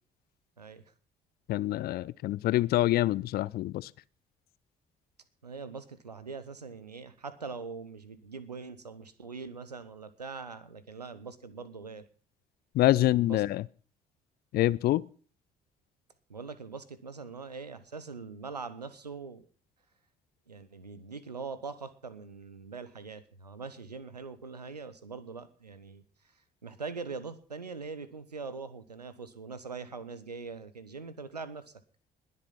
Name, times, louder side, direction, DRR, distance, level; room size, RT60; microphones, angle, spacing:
voice 1, 0.6-0.9 5.4-12.0 13.0-13.4 16.3-19.5 20.5-31.7, right 4 dB, 85° right, 0.9 m, -42 dB
voice 2, 1.5-3.9 12.7-13.6 14.5-15.0, left 15 dB, 50° left, 0.6 m, -26 dB
20.5 x 7.7 x 5.8 m
figure-of-eight pair, 50°, 20 cm